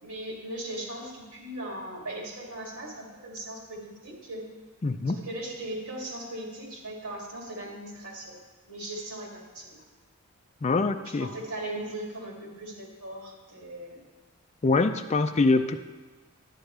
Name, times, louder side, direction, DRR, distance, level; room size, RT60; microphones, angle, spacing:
voice 1, 0.0-4.5 5.1-8.4 8.6-9.8 11.0-14.0, right 1 dB, 85° right, -3 dB, 2.6 m, -38 dB
voice 2, 4.8-5.2 10.6-11.3 14.6-15.7, left 3 dB, 30° left, 8 dB, 0.4 m, -24 dB
10.5 x 9.6 x 3.3 m, 1.3 s
head